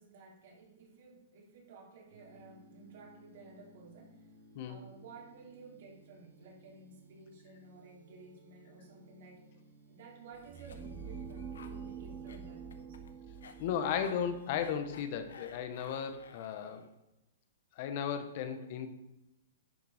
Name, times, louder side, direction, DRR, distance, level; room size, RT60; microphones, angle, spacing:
voice 1, 0.0-4.3 4.7-9.6 9.9-13.1, right 3 dB, 55° right, -2 dB, 3.4 m, -54 dB
sound 1, 2.1-12.7, right 2 dB, 80° right, 3.6 m, -61 dB
Cough, 10.3-16.9, left 6 dB, 90° left, 1.2 m, -56 dB
sound 2, 10.3-16.2, right 6 dB, 15° right, 0.7 m, -47 dB
voice 2, 13.6-16.8 17.8-18.9, left 8 dB, 40° left, 9 dB, 1.1 m, -35 dB
10.5 x 6.7 x 5.0 m, 0.93 s
hypercardioid pair, 165°, 0 cm